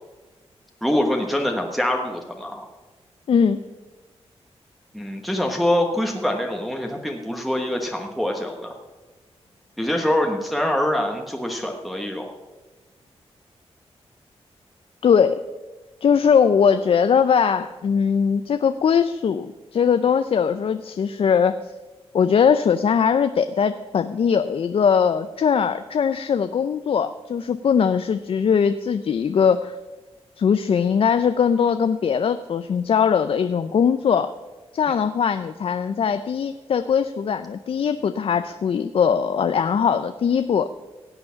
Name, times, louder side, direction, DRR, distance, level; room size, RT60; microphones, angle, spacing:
voice 1, 0.8-2.7 4.9-8.7 9.8-12.3, left 1 dB, ahead, 1 dB, 1.2 m, -24 dB
voice 2, 3.3-3.6 15.0-15.4 16.0-21.6 22.1-29.7 30.4-34.3 34.7-40.7, left 7 dB, 60° left, 11 dB, 0.5 m, -20 dB
16.5 x 8.1 x 5.7 m, 1.2 s
wide cardioid pair, 110°, 11 cm